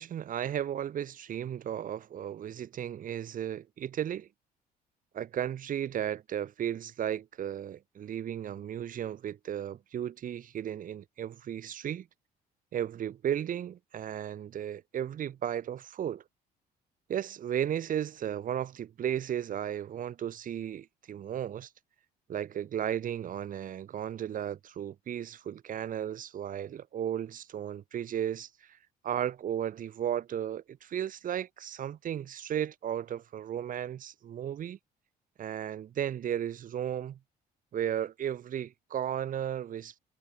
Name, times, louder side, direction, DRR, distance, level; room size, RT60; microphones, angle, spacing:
voice 1, 0.0-4.3 5.1-12.1 12.7-16.2 17.1-21.7 22.3-28.8 29.0-34.8 35.4-37.2 37.7-40.0, right 10 dB, 55° right, 3.4 m, -35 dB
cardioid pair, 110°, 17 cm